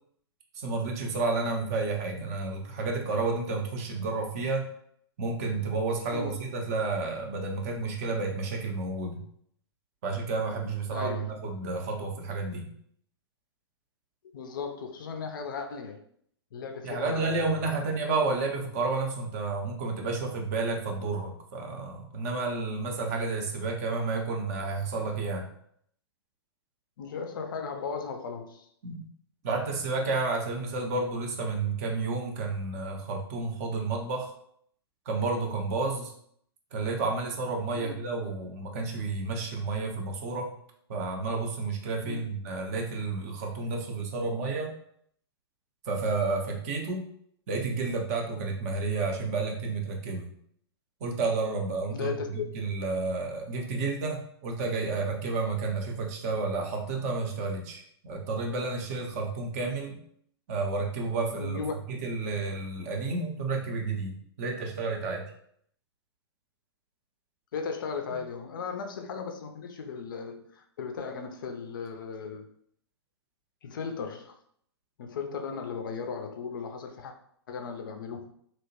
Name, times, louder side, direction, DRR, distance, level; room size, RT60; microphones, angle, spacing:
voice 1, 0.5-4.7 5.2-9.2 10.0-12.7 16.8-25.5 28.8-29.1 29.4-34.3 35.1-36.1 36.7-40.5 40.9-44.7 45.9-47.1 47.5-50.3 51.0-60.0 60.5-61.6 61.9-65.3, right 3 dB, 35° right, 2 dB, 0.5 m, -31 dB
voice 2, 10.9-11.3 14.3-16.0 16.5-17.9 27.0-28.7 37.7-37.9 42.0-42.2 51.9-52.4 61.4-61.7 67.5-72.5 73.6-74.4 75.0-77.1 77.5-78.3, left 5 dB, 50° left, 6 dB, 0.4 m, -36 dB
2.8 x 2.1 x 2.8 m, 0.66 s
figure-of-eight pair, 110°, 14 cm